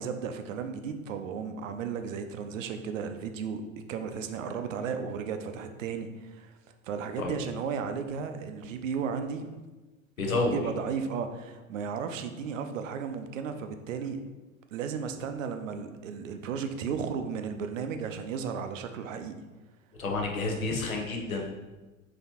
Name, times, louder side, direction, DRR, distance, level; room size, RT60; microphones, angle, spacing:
voice 1, 0.0-3.6 3.9-6.6 6.8-9.5 10.4-14.2 14.7-19.3, right 6 dB, 70° right, 7 dB, 0.5 m, -34 dB
voice 2, 10.2-10.6 20.0-21.4, left 2 dB, 85° left, 1 dB, 0.7 m, -29 dB
3.9 x 3.0 x 2.8 m, 1.2 s
figure-of-eight pair, 80°, 41 cm